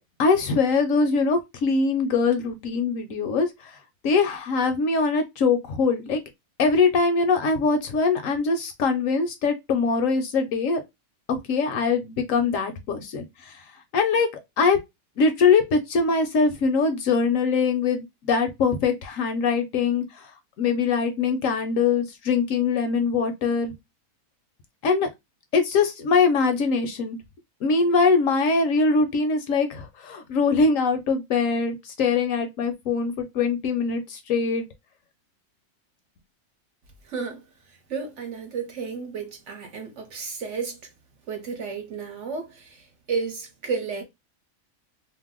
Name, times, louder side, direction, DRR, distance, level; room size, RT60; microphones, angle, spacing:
voice 1, 0.2-3.8 4.0-6.2 6.6-10.8 11.3-13.6 13.9-14.3 14.6-14.8 15.2-20.3 20.6-23.7 24.8-25.1 25.5-27.2 27.6-34.7, left 4 dB, 65° left, 0.9 m, -22 dB
voice 2, 37.1-37.4 37.9-40.8 41.3-44.0, right 5 dB, 60° right, 1.0 m, -32 dB
2.6 x 2.1 x 3.5 m
omnidirectional pair, 1.6 m